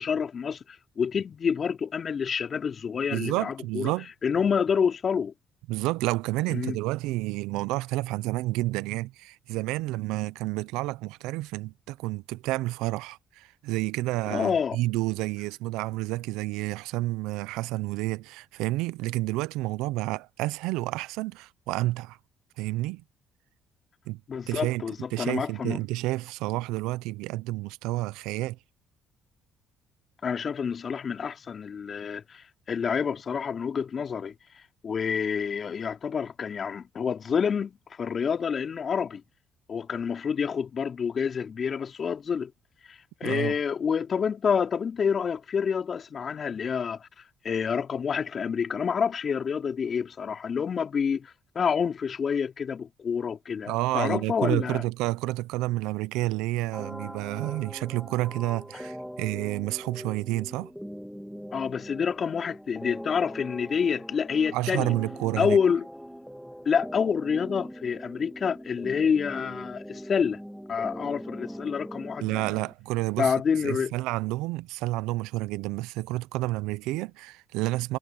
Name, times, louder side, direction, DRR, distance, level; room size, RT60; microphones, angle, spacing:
voice 1, 0.0-3.9 4.2-5.3 6.5-6.8 14.3-14.8 24.3-25.8 30.2-34.3 34.8-39.2 39.7-42.5 42.9-47.1 47.4-54.8 61.5-64.9 65.4-65.9 66.6-70.4 70.7-72.6 73.2-73.9, left 6 dB, 50° left, 2.9 m, -28 dB
voice 2, 3.1-4.1 5.7-22.2 22.6-23.0 24.1-24.2 24.5-28.6 43.2-43.6 53.7-60.7 64.5-65.6 72.2-73.3 73.6-78.0, right 19 dB, 80° right, 0.7 m, -30 dB
sound 1, 56.7-72.7, equal, ahead, 2.7 m, -41 dB
hypercardioid pair, 55°, 0 cm